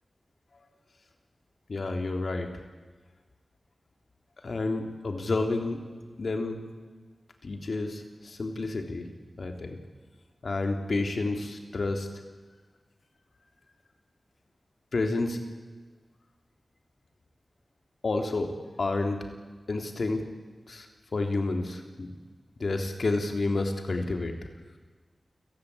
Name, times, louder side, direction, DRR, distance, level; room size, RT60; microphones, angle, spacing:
voice 1, 1.7-2.5 4.4-5.8 6.2-6.6 7.4-9.1 9.4-9.8 10.4-12.1 14.9-15.4 18.0-18.5 18.8-19.2 19.7-20.2 20.7-20.9 21.1-22.2 22.6-24.3, left 3 dB, 65° left, 4 dB, 3.4 m, -30 dB
30.0 x 18.0 x 8.6 m, 1.4 s
wide cardioid pair, 85°, 0 cm